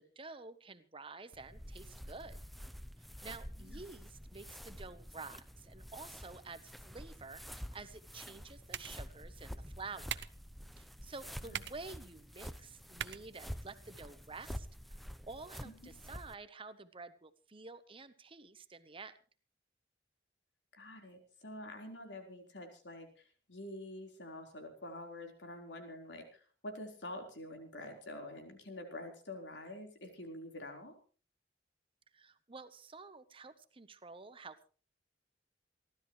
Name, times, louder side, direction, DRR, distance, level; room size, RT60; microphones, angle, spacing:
voice 1, 0.0-2.4 3.2-10.1 10.8-14.7 15.3-19.1 32.1-34.7, right 3 dB, 30° right, 12 dB, 1.0 m, -50 dB
sound 1, 1.3-16.4, equal, ahead, 0.8 m, -48 dB
sound 2, 8.2-14.2, right 9 dB, 80° right, 0.7 m, -48 dB
voice 2, 20.7-31.0, left 1 dB, 90° left, 3 dB, 4.4 m, -47 dB
28.5 x 13.0 x 3.2 m, 0.38 s
head